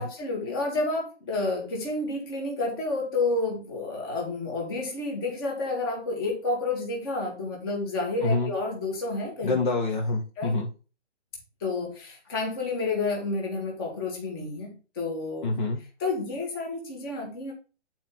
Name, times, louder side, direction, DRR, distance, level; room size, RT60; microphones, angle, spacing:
voice 1, 0.0-9.6 10.4-10.6 11.6-15.5 16.0-17.5, left 3 dB, 20° left, 0 dB, 1.8 m, -30 dB
voice 2, 8.2-8.5 9.4-10.7 15.4-15.8, left 3 dB, 45° left, 1 dB, 1.3 m, -26 dB
9.2 x 4.5 x 3.8 m, 0.34 s
hypercardioid pair, 175°, 35 cm